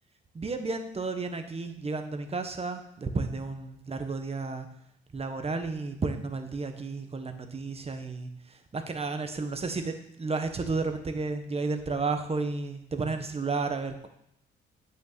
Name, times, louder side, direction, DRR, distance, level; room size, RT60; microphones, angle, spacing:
voice 1, 0.3-4.7 5.1-14.1, right 3 dB, 30° right, 7 dB, 1.5 m, -32 dB
8.6 x 6.9 x 7.0 m, 0.75 s
cardioid pair, 90°, 20 cm